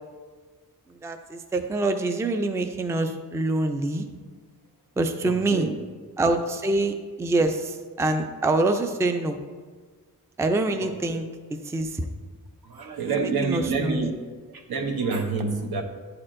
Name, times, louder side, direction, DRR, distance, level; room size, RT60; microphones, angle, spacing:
voice 1, 1.0-4.1 5.0-5.7 6.2-9.4 10.4-11.2 11.6-12.1 13.2-14.1, right 2 dB, 10° right, 7 dB, 0.3 m, -25 dB
voice 2, 5.2-5.8 10.8-11.2 12.6-14.1 14.5-15.8, right 4 dB, 80° right, 4 dB, 0.8 m, -28 dB
9.6 x 4.3 x 2.5 m, 1.5 s
wide cardioid pair, 120°, 36 cm